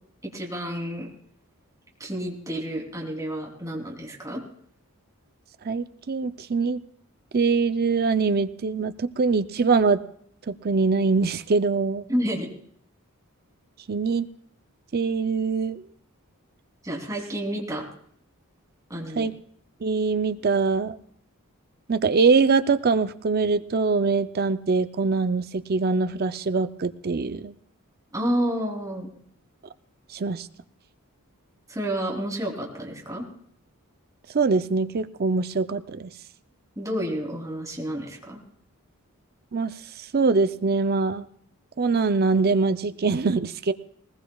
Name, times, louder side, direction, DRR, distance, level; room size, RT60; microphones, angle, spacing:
voice 1, 0.2-1.1 2.0-4.4 12.1-12.5 16.8-17.8 18.9-19.3 28.1-29.2 31.7-33.2 36.8-38.4, equal, 15° right, -2 dB, 3.1 m, -30 dB
voice 2, 5.6-6.8 7.3-10.0 10.5-12.1 13.9-14.3 14.9-15.8 19.2-19.3 19.8-21.0 21.9-27.5 30.1-30.5 34.3-36.1 39.5-41.3 41.8-43.7, right 4 dB, 45° right, 12 dB, 0.5 m, -23 dB
20.5 x 20.0 x 2.3 m, 0.63 s
head